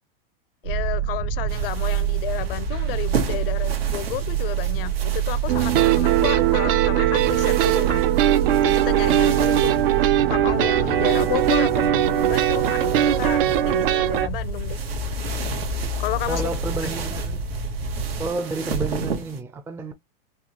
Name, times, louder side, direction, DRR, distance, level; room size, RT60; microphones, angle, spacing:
voice 1, 0.6-8.1 8.6-14.8 16.0-16.4, left 15 dB, 70° left, 0.6 m, -31 dB
sound 1, 0.6-18.3, right 6 dB, 50° right, 1.4 m, -27 dB
sound 2, 1.5-19.4, right 5 dB, 85° right, 1.5 m, -35 dB
sound 3, 5.5-14.3, right 12 dB, 70° right, 0.6 m, -20 dB
voice 2, 16.3-17.6 18.2-19.9, right 3 dB, 10° right, 0.5 m, -30 dB
4.3 x 2.4 x 2.9 m
supercardioid pair, 135°, 29 cm